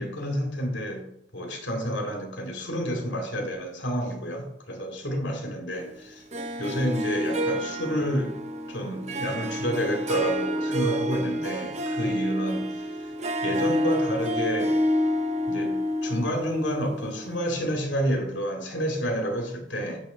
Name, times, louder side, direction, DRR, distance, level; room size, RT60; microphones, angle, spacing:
voice 1, 0.0-6.2 6.6-8.4 8.7-13.1 13.4-14.8 15.5-20.0, equal, 75° left, 2.5 m, -29 dB
Harp, 6.3-17.4, equal, 35° right, 0.7 m, -28 dB
10.0 x 3.5 x 6.2 m
head